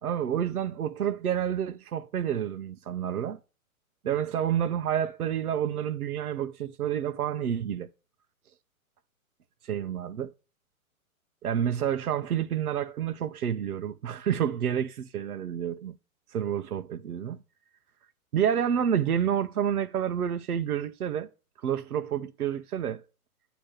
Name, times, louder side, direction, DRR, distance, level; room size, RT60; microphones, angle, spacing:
voice 1, 0.0-3.4 4.0-7.9 9.6-10.3 11.4-16.0 16.3-17.4 18.3-21.3 21.6-23.0, right 9 dB, 80° right, 0.8 m, -29 dB
8.7 x 3.0 x 6.4 m
hypercardioid pair, 130°, 44 cm